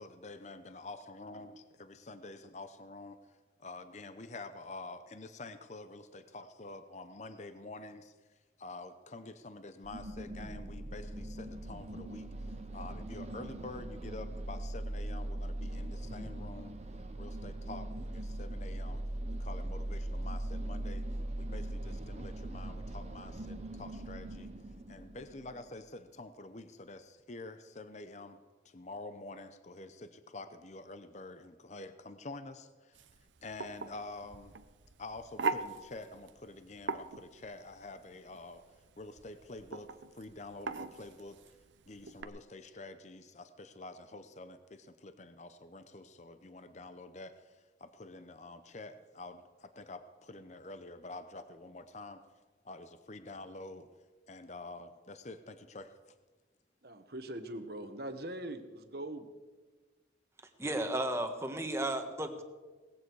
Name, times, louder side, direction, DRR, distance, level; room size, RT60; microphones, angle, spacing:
voice 1, 0.0-3.2 3.6-8.1 8.6-16.7 17.2-19.0 19.3-21.1 21.4-24.5 24.9-28.4 28.6-33.0 33.4-34.6 35.0-38.6 39.0-41.4 41.9-52.2 52.6-53.9 54.3-55.9, left 2 dB, 40° left, 10 dB, 0.7 m, -47 dB
sound 1, 9.8-25.8, right 1 dB, 35° right, 1.0 m, -40 dB
sound 2, 32.9-42.2, right 4 dB, 75° right, 0.8 m, -41 dB
voice 2, 56.8-59.3, right 1 dB, 55° right, 8 dB, 1.3 m, -42 dB
voice 3, 60.6-62.4, right 1 dB, 15° right, 5 dB, 1.4 m, -34 dB
18.5 x 15.0 x 4.7 m, 1.3 s
head